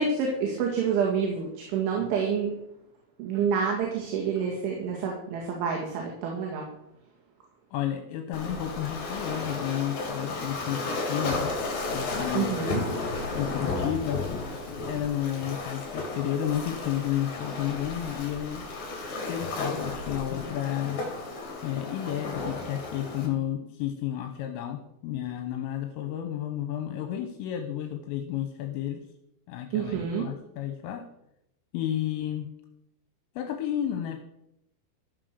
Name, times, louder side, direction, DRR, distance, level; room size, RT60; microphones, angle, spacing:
voice 1, 0.0-2.5 3.2-6.7 12.3-12.8 29.7-30.3, right 6 dB, 70° right, 0 dB, 4.2 m, -28 dB
voice 2, 7.7-11.6 11.9-12.6 13.3-14.2 14.7-18.7 19.3-21.0 21.6-29.1 29.5-31.1 31.7-32.5 33.4-34.2, left 11 dB, 80° left, 6 dB, 3.4 m, -32 dB
Waves surf, 8.3-23.3, left 3 dB, 50° left, 3.9 m, -33 dB
14.0 x 7.6 x 6.8 m, 0.80 s
omnidirectional pair, 5.9 m